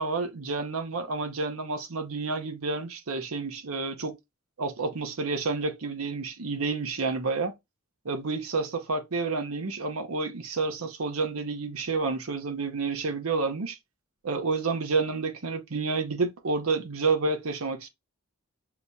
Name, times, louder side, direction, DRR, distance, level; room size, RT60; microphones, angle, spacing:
voice 1, 0.0-4.2 4.6-7.5 8.0-13.8 14.2-17.9, right 4 dB, 85° right, 0.8 m, -29 dB
6.7 x 2.3 x 2.7 m
head